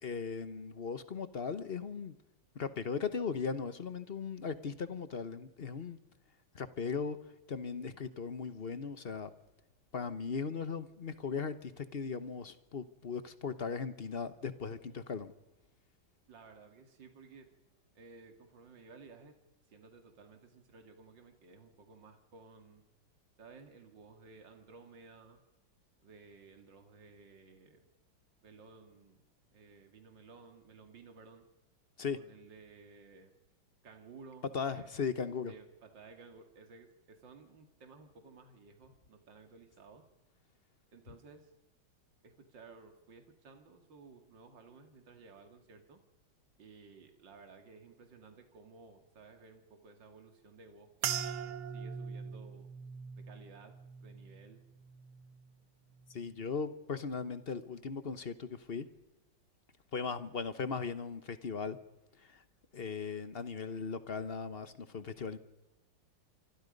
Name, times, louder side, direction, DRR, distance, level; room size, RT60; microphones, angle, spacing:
voice 1, 0.0-2.1 2.5-6.0 6.5-7.2 7.5-9.3 9.9-15.3 32.0-32.2 34.5-35.5 56.1-58.9 59.9-61.8 62.2-62.4 62.7-65.4, left 5 dB, 40° left, 12 dB, 0.9 m, -38 dB
voice 2, 16.2-17.5 17.9-19.4 19.7-22.8 23.4-25.4 26.0-27.8 28.4-29.2 29.5-31.5 32.1-33.3 33.8-34.9 35.5-40.1 40.9-41.5 42.2-46.0 46.6-52.7 53.1-53.7 54.0-54.6, right 4 dB, 60° right, 5 dB, 3.0 m, -56 dB
sound 1, 51.0-55.6 55.9-56.5 57.1-57.4, right 7 dB, 85° right, 2.0 m, -42 dB
26.5 x 25.0 x 5.3 m, 1.0 s
omnidirectional pair, 2.2 m